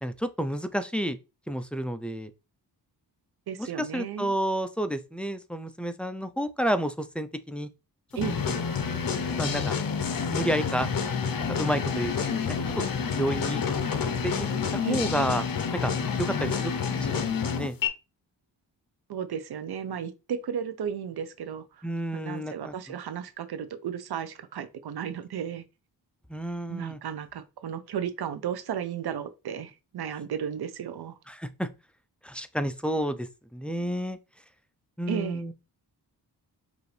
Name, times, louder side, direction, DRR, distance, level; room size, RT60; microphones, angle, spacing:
voice 1, 0.0-1.2 1.5-2.3 3.6-7.7 8.5-8.6 9.4-9.7 10.3-10.9 11.5-12.8 13.2-13.6 14.2-15.4 15.7-15.9 16.2-17.8 21.8-23.0 26.3-27.0 31.3-31.7 32.2-33.3 33.5-34.2 35.0-35.5, equal, 5° left, 0.4 m, -30 dB
voice 2, 3.5-4.3 8.2-8.4 14.8-15.1 19.1-21.9 22.1-25.6 26.7-31.1 35.1-35.4, right 8 dB, 65° right, 0.7 m, -34 dB
sound 1, 8.2-17.9, left 6 dB, 55° left, 0.8 m, -29 dB
sound 2, 8.6-14.0, left 4 dB, 40° left, 1.8 m, -44 dB
4.9 x 2.7 x 3.2 m
cardioid pair, 70°, 42 cm